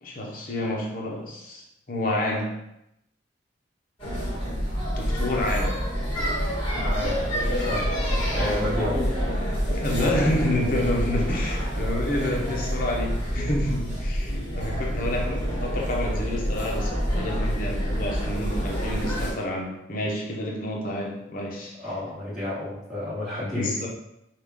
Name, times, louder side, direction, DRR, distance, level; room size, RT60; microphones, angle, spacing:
voice 1, 0.0-2.6 4.9-5.9 8.1-8.2 9.8-21.8 23.5-23.9, left 1 dB, 45° left, -1 dB, 0.8 m, -29 dB
sound 1, 4.0-19.3, equal, 25° left, 1.5 m, -27 dB
voice 2, 6.8-7.3 7.7-7.9 8.3-9.2 21.8-23.9, left 1 dB, ahead, -12 dB, 1.5 m, -30 dB
5.4 x 2.4 x 3.5 m, 0.83 s
head